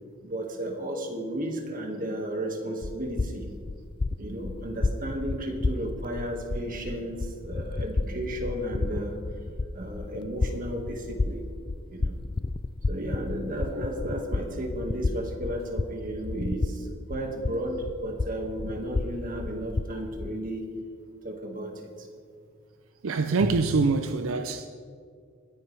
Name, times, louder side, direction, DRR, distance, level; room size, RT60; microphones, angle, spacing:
voice 1, 0.2-3.5 4.2-9.2 9.7-11.4 11.9-12.2 12.9-16.8 17.1-20.7 21.2-21.7, right 1 dB, 45° right, 2.0 m, -33 dB
sound 1, 2.8-20.3, left 3 dB, 25° left, 0.3 m, -32 dB
voice 2, 23.0-24.7, right 4 dB, 80° right, 0.6 m, -25 dB
22.0 x 9.7 x 3.4 m
head